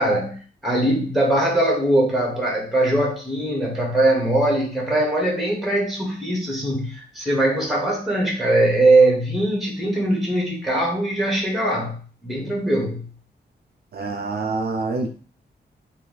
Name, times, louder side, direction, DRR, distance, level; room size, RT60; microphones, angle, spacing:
voice 1, 0.0-13.1, right 1 dB, ahead, -2 dB, 1.4 m, -21 dB
voice 2, 13.9-15.1, right 3 dB, 60° right, 3 dB, 0.7 m, -26 dB
3.3 x 2.7 x 4.0 m, 0.39 s
wide cardioid pair, 135°, 18 cm